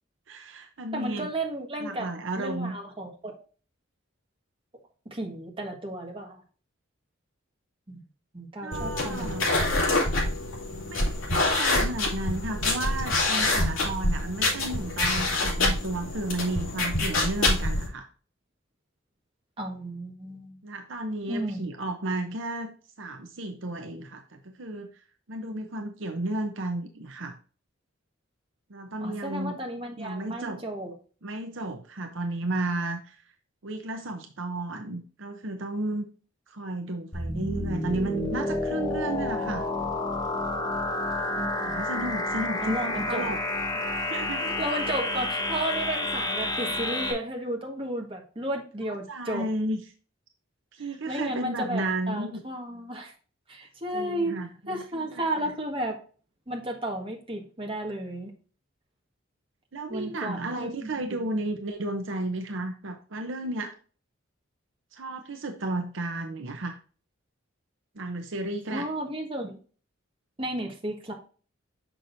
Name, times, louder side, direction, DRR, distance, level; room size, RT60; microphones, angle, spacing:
voice 1, 0.3-1.3 1.8-2.8 8.6-9.5 10.9-18.1 20.6-24.9 25.3-27.4 28.7-29.6 30.0-30.6 31.2-33.2 33.6-36.0 36.5-39.7 41.6-43.4 44.0-44.5 49.1-49.8 50.7-52.4 53.9-55.5 59.7-63.7 64.9-66.8 68.0-68.9, right 2 dB, 65° right, 5 dB, 0.8 m, -33 dB
voice 2, 0.9-2.1 2.4-3.4 5.1-6.4 7.9-8.0 8.3-9.5 19.6-20.6 21.3-21.7 29.0-30.9 41.3-41.6 42.6-43.2 44.6-49.5 50.8-53.1 53.5-54.4 54.7-56.0 56.5-58.3 59.9-61.2 68.7-69.6 70.4-71.1, right 1 dB, 25° right, 1 dB, 1.6 m, -33 dB
sound 1, 8.7-17.9, left 2 dB, 75° left, 2.7 m, -26 dB
sound 2, 37.1-47.1, left 2 dB, 20° left, 1.2 m, -30 dB
6.4 x 6.1 x 2.6 m, 0.38 s
head